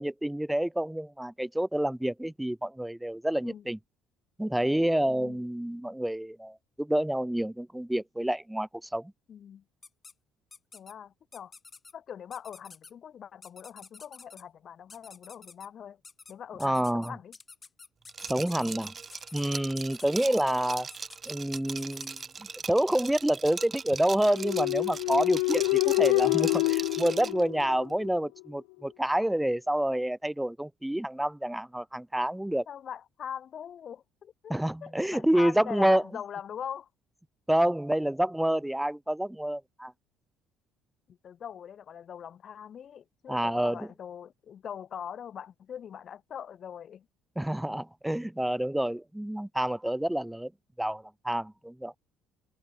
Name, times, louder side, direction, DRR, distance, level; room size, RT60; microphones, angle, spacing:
voice 1, 0.0-3.8 4.4-9.1 16.6-17.2 18.3-18.9 19.3-20.9 21.3-32.7 34.5-36.0 37.5-39.9 43.3-43.9 47.4-50.5 50.8-51.9, right 1 dB, 5° right, 0.4 m, -28 dB
voice 2, 5.1-5.4 9.3-9.6 10.7-11.5 11.9-16.0 16.3-17.3 32.7-34.5 34.8-36.9 41.1-47.1, left 8 dB, 50° left, 4.6 m, -42 dB
sound 1, 9.8-10.1 10.5-10.9 11.3-11.9 12.3-12.9 13.4-14.4 14.9-15.7 16.0-16.3 16.6-22.2, left 4 dB, 30° left, 7.2 m, -50 dB
Liquid, 18.1-27.4, right 5 dB, 35° right, 1.2 m, -40 dB
sound 2, 24.3-28.2, left 40 dB or more, 90° left, 0.7 m, -27 dB
supercardioid pair, 85°, 0 cm